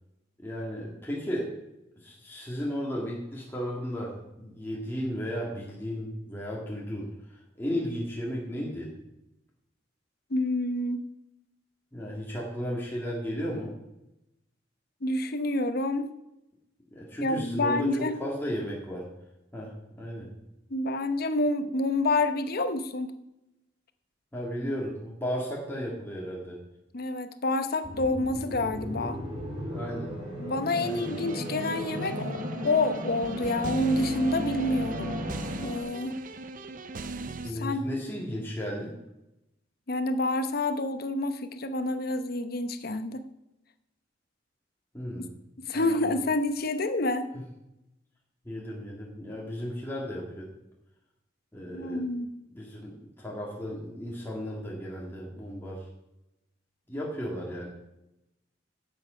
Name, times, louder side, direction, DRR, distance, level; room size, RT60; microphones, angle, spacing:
voice 1, 0.4-1.5 2.0-8.9 11.9-13.8 16.9-19.1 19.5-20.3 24.3-26.6 29.7-30.1 30.8-31.1 37.4-38.9 44.9-45.3 45.7-46.1 47.3-47.4 48.5-50.5 51.5-52.0 52.5-55.9 56.9-57.7, equal, 10° left, -4 dB, 2.0 m, -34 dB
voice 2, 10.3-11.0 15.0-16.1 17.2-18.1 20.7-23.1 26.9-29.2 30.4-32.4 32.6-35.1 35.6-36.2 37.5-37.8 39.9-43.3 45.6-47.3 51.7-52.3, left 2 dB, 55° left, 10 dB, 0.8 m, -28 dB
sound 1, 27.8-35.8, left 1 dB, 30° right, 3.1 m, -36 dB
sound 2, 30.8-37.5, right 2 dB, 45° right, 0.6 m, -38 dB
11.5 x 8.0 x 5.0 m, 0.90 s
head